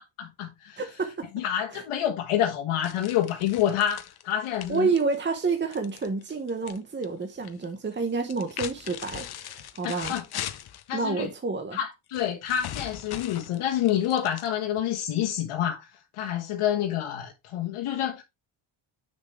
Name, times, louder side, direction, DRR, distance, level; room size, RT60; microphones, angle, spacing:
voice 1, 0.2-0.8 1.3-4.9 9.8-10.2 10.9-11.3 11.7-15.9 16.1-18.2, left 10 dB, 80° left, 1.5 m, -28 dB
voice 2, 0.8-1.3 1.7-1.8 4.7-10.1 10.9-11.8, right 4 dB, 20° right, 1.0 m, -29 dB
sound 1, 2.8-6.8 7.0-7.6 8.2-10.9 12.1-14.8, left 11 dB, 50° left, 0.9 m, -40 dB
7.1 x 6.6 x 3.3 m
cardioid pair, 110°, 50 cm